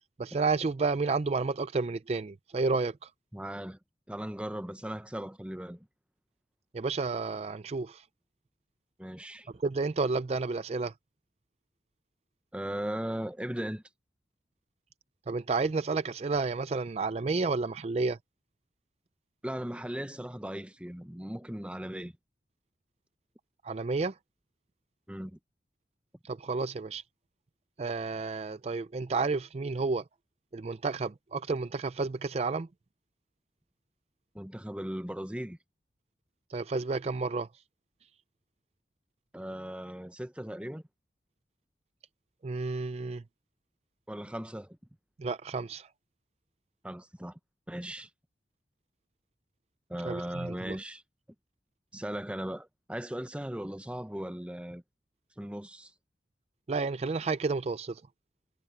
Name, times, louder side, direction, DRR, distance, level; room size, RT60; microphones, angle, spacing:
voice 1, 0.2-3.1 6.7-8.0 9.6-10.9 15.3-18.2 23.6-24.2 26.2-27.0 27.8-30.0 30.5-32.7 36.5-37.5 42.4-43.2 45.2-45.9 50.0-50.8 56.7-58.0, right 4 dB, 35° right, 0.4 m, -31 dB
voice 2, 3.3-3.8 4.1-5.9 9.0-9.5 12.5-13.8 19.4-22.1 25.1-25.4 34.3-35.6 39.3-40.8 44.1-44.8 46.8-47.4 47.7-48.1 49.9-51.0 51.9-54.8 55.4-55.9, equal, 5° right, 0.8 m, -38 dB
head